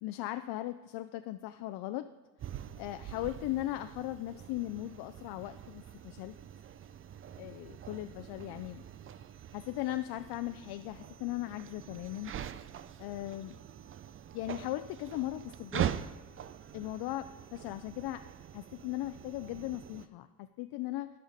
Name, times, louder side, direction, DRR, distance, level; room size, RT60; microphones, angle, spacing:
voice 1, 0.0-2.1 2.8-6.4 7.4-8.8 9.5-12.3 13.0-13.6 14.3-15.9 16.7-18.2 18.5-21.1, left 16 dB, 65° left, 9 dB, 0.5 m, -38 dB
sound 1, 2.4-20.1, right 10 dB, 30° right, 0.4 m, -43 dB
12.5 x 5.7 x 4.0 m, 1.3 s
supercardioid pair, 85°, 43 cm